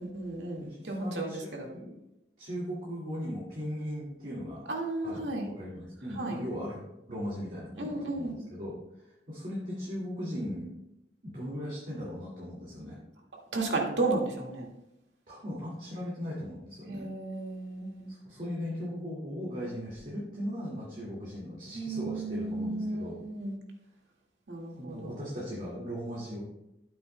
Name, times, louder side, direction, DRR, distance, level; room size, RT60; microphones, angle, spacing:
voice 1, 0.0-1.7 4.7-5.5 6.1-6.4 7.8-8.3 13.5-14.7 16.9-18.1 21.7-23.6 24.5-25.2, right 2 dB, 85° right, 0 dB, 2.0 m, -33 dB
voice 2, 0.6-1.9 2.4-4.8 5.0-5.3 5.5-10.7 11.2-13.0 15.3-17.1 18.1-23.2 24.8-26.4, equal, 45° right, -6 dB, 2.2 m, -38 dB
12.5 x 9.2 x 2.2 m, 0.89 s
head